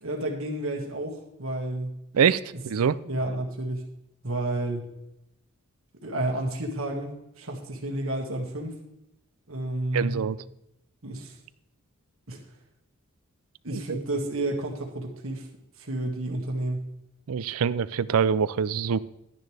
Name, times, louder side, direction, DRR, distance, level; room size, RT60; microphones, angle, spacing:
voice 1, 0.0-2.0 3.1-3.9 4.2-4.9 6.0-8.8 9.5-10.3 11.0-11.4 12.3-12.4 13.6-15.5 15.8-16.9, right 1 dB, 70° right, 2 dB, 1.9 m, -31 dB
voice 2, 2.1-3.0 9.9-10.4 13.7-14.0 17.3-19.0, right 7 dB, 85° right, 18 dB, 0.4 m, -24 dB
12.0 x 10.5 x 3.3 m, 0.85 s
head